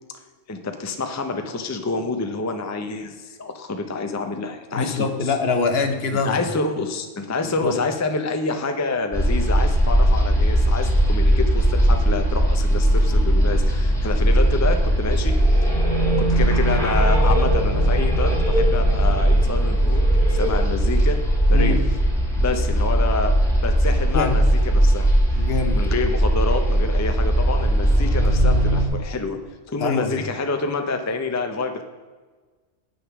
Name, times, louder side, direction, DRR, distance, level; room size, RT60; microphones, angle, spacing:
voice 1, 0.5-5.3 6.3-15.4 15.6-15.8 16.2-20.0 20.3-21.2 21.5-21.9 22.4-25.1 25.7-29.4 29.7-31.8, left 3 dB, 20° left, 6 dB, 0.6 m, -27 dB
voice 2, 4.7-6.4 7.4-7.7 21.5-21.8 24.1-24.4 25.4-25.8 29.8-30.2, left 4 dB, 60° left, 7 dB, 1.1 m, -24 dB
sound 1, 9.1-28.8, right 1 dB, ahead, 1.8 m, -19 dB
8.2 x 6.6 x 6.0 m, 1.4 s
omnidirectional pair, 1.2 m